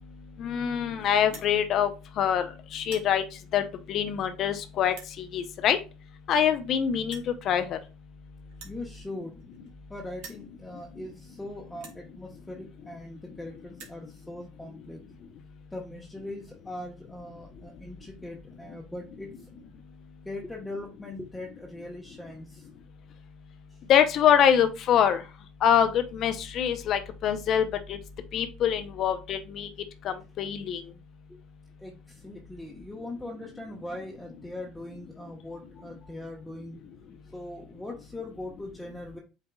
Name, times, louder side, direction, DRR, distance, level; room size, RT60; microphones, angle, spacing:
voice 1, 0.4-1.9 2.2-2.5 2.7-3.2 3.5-3.6 3.9-5.8 6.3-7.8 23.9-25.2 25.6-28.0 28.3-29.7 30.0-30.8, left 9 dB, 55° left, 9 dB, 0.7 m, -24 dB
sound 1, 1.3-1.5 2.2-2.4 2.7-3.1 3.9-4.0 4.9-5.1 6.2-6.3 6.5-6.6 7.1-7.3 8.5-9.8 10.1-10.5 11.2-11.3 11.8-12.0 12.9-13.0 13.2-13.3 13.6-14.0, right 5 dB, 65° right, 1.6 m, -47 dB
voice 2, 8.6-9.3 9.9-15.0 15.7-19.5 20.2-22.7 23.7-23.8 31.3-31.4 31.8-36.8 37.2-39.2, left 1 dB, 10° left, -1 dB, 1.1 m, -40 dB
8.1 x 2.8 x 2.3 m, 0.31 s
hypercardioid pair, 75°, 0 cm